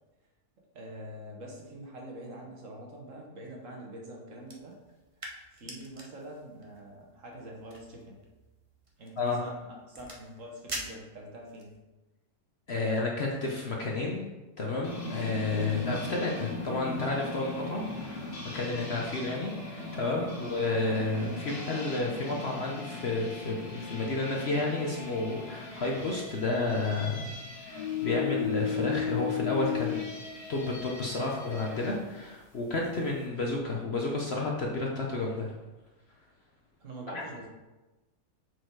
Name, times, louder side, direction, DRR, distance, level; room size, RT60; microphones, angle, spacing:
voice 1, 0.7-4.8 5.5-8.2 9.0-11.7 20.3-20.5 36.8-37.5, right 1 dB, 55° right, -1 dB, 1.5 m, -45 dB
sound 1, 4.4-11.8, right 1 dB, 30° right, 0.7 m, -46 dB
voice 2, 12.7-14.2 14.6-18.3 18.5-27.3 27.6-30.1 30.5-35.5 37.1-37.2, left 2 dB, 50° left, -1 dB, 0.9 m, -31 dB
sound 2, 14.8-32.0, left 6 dB, 80° left, 2.2 m, -37 dB
6.2 x 4.6 x 4.6 m, 1.1 s
omnidirectional pair, 1.7 m